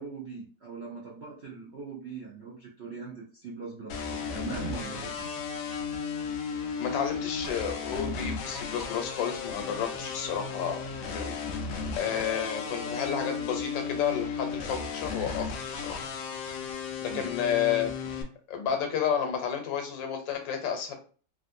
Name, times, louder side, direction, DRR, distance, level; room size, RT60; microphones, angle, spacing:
voice 1, 0.0-5.3 17.1-17.4, right 5 dB, 70° right, -3 dB, 0.6 m, -41 dB
sound 1, 3.9-18.2, left 5 dB, 70° left, 0.8 m, -35 dB
voice 2, 6.8-10.8 11.0-11.4 11.9-16.1 17.0-20.9, left 8 dB, 85° left, 5 dB, 1.4 m, -31 dB
3.3 x 2.5 x 2.6 m, 0.39 s
omnidirectional pair, 2.0 m